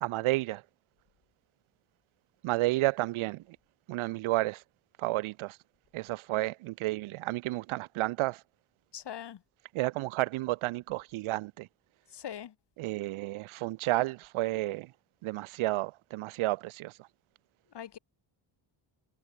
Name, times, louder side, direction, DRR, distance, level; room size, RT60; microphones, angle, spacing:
voice 1, 0.0-0.6 2.4-3.4 3.9-4.6 5.0-5.6 5.9-8.4 9.7-11.7 12.8-14.9 15.2-16.9, right 19 dB, 75° right, 0.6 m, -31 dB
voice 2, 8.9-9.4 12.1-12.5 17.7-18.0, left 9 dB, 55° left, 4.2 m, -41 dB
cardioid pair, 135°, 49 cm